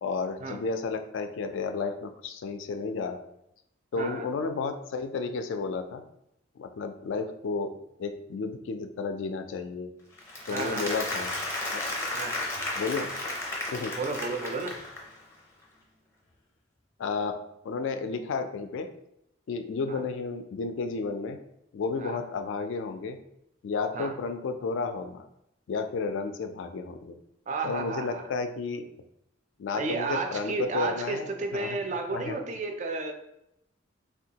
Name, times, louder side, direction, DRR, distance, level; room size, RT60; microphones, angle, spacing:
voice 1, 0.0-3.2 3.9-6.0 6.6-7.7 8.0-9.9 10.5-11.3 11.7-11.8 12.8-13.1 13.7-14.0 17.0-17.4 17.6-18.9 19.5-21.4 21.7-23.2 23.6-25.3 25.7-27.1 27.6-28.8 29.6-31.8 32.1-32.4, left 4 dB, 70° left, 7 dB, 0.3 m, -32 dB
voice 2, 3.9-4.3 10.5-11.0 12.1-12.4 14.0-14.7 19.9-20.0 22.0-22.2 23.9-24.1 27.5-28.3 29.7-33.1, right 3 dB, 35° right, 4 dB, 0.3 m, -32 dB
Applause, 10.2-15.2, left 2 dB, 15° left, 0.5 m, -33 dB
3.5 x 2.2 x 2.8 m, 0.79 s
head